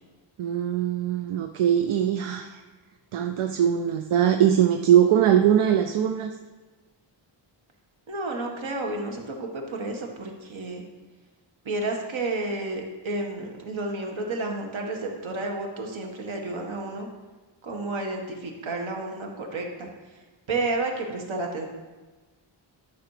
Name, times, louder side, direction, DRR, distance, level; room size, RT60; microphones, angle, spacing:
voice 1, 0.4-2.6 3.1-6.3, right 10 dB, 85° right, 6 dB, 0.7 m, -21 dB
voice 2, 8.1-10.8 11.6-17.1 17.6-20.2 20.5-21.7, right 2 dB, 70° right, 1 dB, 1.7 m, -31 dB
12.5 x 6.0 x 5.0 m, 1.3 s
wide cardioid pair, 145°, 49 cm